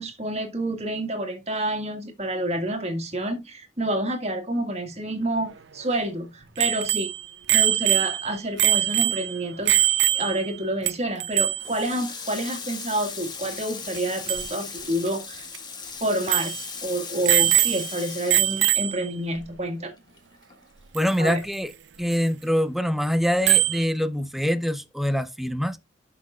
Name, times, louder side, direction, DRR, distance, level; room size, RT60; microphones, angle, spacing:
voice 1, 0.0-7.1 7.5-15.5 16.0-16.5 16.8-19.9 21.2-21.4, right 1 dB, 35° right, 1.8 m, -28 dB
Bicycle bell, 6.6-10.6 10.9-11.0 11.2-11.7 13.9-14.0 14.3-14.5 15.1-15.2 15.5-15.6 16.3-16.6 17.2-18.0 18.3-19.1 21.0-21.1 23.5-23.8, right 12 dB, 75° right, 0.7 m, -22 dB
Water tap faucet, 11.6-19.4 19.7-21.1, left 5 dB, 25° left, 1.6 m, -38 dB
voice 2, 20.9-21.7 22.0-25.8, equal, ahead, 0.6 m, -24 dB
12.5 x 5.8 x 2.4 m
head